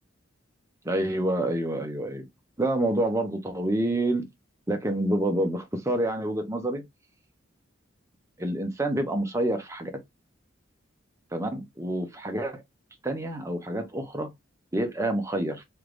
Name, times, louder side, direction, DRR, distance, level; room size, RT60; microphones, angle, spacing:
voice 1, 0.8-2.3 2.6-4.2 4.7-6.8 8.4-9.9 11.3-12.6 13.0-14.3 14.7-15.6, right 1 dB, 15° right, 0.6 m, -27 dB
3.3 x 2.5 x 3.0 m
head